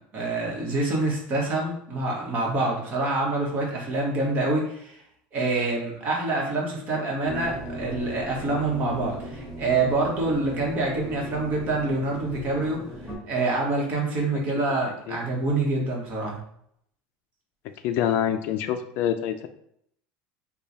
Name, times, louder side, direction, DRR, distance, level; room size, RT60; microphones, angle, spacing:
voice 1, 0.1-5.0 5.3-12.8 13.0-16.4, right 2 dB, 35° right, -1 dB, 1.1 m, -26 dB
sound 1, 7.2-13.2, equal, 10° left, 0.9 m, -38 dB
voice 2, 17.8-19.5, left 10 dB, 55° left, 9 dB, 0.3 m, -26 dB
3.1 x 2.3 x 4.0 m, 0.70 s
cardioid pair, 155°, 5 cm